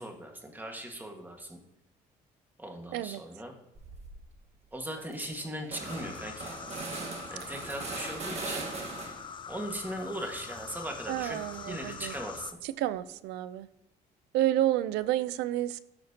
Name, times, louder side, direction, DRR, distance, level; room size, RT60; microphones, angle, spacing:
voice 1, 0.0-1.6 2.6-3.6 4.7-6.6 7.3-8.7 9.5-12.5, right 1 dB, 10° right, 3 dB, 1.6 m, -39 dB
sound 1, 3.7-4.2 4.6-4.7 5.0-9.4 9.8-11.9, right 4 dB, 40° right, 1.4 m, -41 dB
sound 2, 5.8-12.5, left 7 dB, 30° left, 0.4 m, -43 dB
voice 2, 11.1-12.1 12.8-13.7 14.3-15.8, right 13 dB, 90° right, 16 dB, 0.5 m, -30 dB
15.0 x 5.9 x 2.8 m, 0.88 s
cardioid pair, 110°, 17 cm